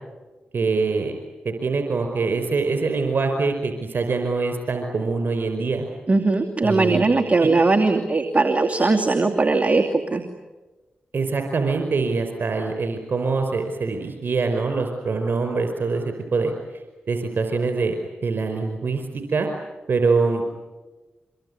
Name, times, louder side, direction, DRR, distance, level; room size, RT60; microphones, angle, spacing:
voice 1, 0.5-1.1 1.4-5.9 6.6-7.1 7.4-7.5 11.1-16.5 17.1-17.9 18.2-19.0 19.3-19.5 19.9-20.4, right 4 dB, 60° right, 5 dB, 5.0 m, -24 dB
voice 2, 6.1-10.2, right 3 dB, 35° right, 4 dB, 2.7 m, -19 dB
25.0 x 23.0 x 9.9 m, 1.2 s
supercardioid pair, 40°, 4 cm